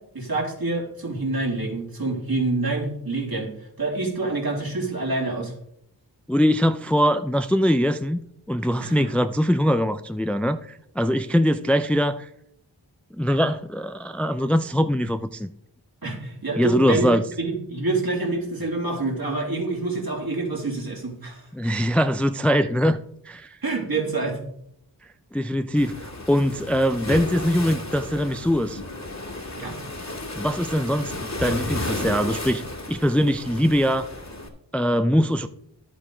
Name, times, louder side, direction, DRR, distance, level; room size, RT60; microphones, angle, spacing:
voice 1, 0.1-3.5 3.8-5.5 8.8-9.1 16.0-17.1 17.4-21.4 23.6-24.4 29.6-29.8, right 3 dB, 55° right, -1 dB, 3.1 m, -27 dB
voice 2, 6.3-8.2 8.5-12.3 13.1-15.5 16.6-17.2 21.5-23.0 23.2-23.6 25.3-28.8 30.4-32.6 32.9-34.1 34.7-35.5, equal, 5° left, 10 dB, 0.4 m, -22 dB
Waves surf, 25.8-34.5, left 2 dB, 40° left, 2.0 m, -33 dB
10.5 x 8.2 x 3.9 m, 0.72 s
cardioid pair, 45°, 44 cm